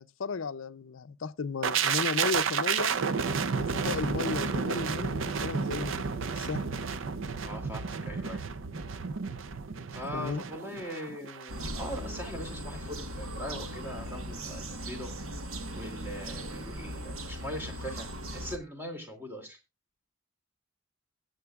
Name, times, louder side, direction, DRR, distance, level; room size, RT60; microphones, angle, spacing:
voice 1, 0.0-3.0 3.6-6.6 10.1-10.4, left 5 dB, 70° left, 0.5 m, -35 dB
sound 1, 1.6-11.5 11.8-12.0, right 5 dB, 65° right, 0.6 m, -31 dB
voice 2, 7.4-8.4 9.9-15.1 15.7-19.6, equal, 10° right, 2.5 m, -41 dB
sound 2, 11.5-18.6, right 1 dB, 90° right, 1.3 m, -38 dB
21.5 x 7.8 x 2.3 m
head